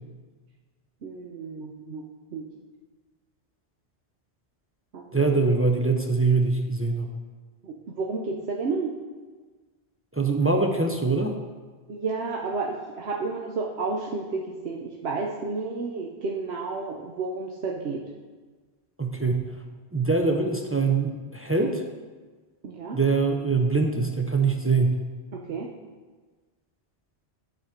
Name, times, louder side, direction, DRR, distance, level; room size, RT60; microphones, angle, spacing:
voice 1, 1.0-2.5 4.9-5.1 7.6-8.9 11.9-18.0 22.6-23.0 25.3-25.7, right 4 dB, 70° right, -1 dB, 1.0 m, -31 dB
voice 2, 5.1-7.1 10.1-11.4 19.0-19.4 19.9-21.8 22.9-24.9, right 4 dB, 20° right, 3 dB, 0.3 m, -23 dB
11.0 x 4.3 x 5.0 m, 1.4 s
omnidirectional pair, 1.1 m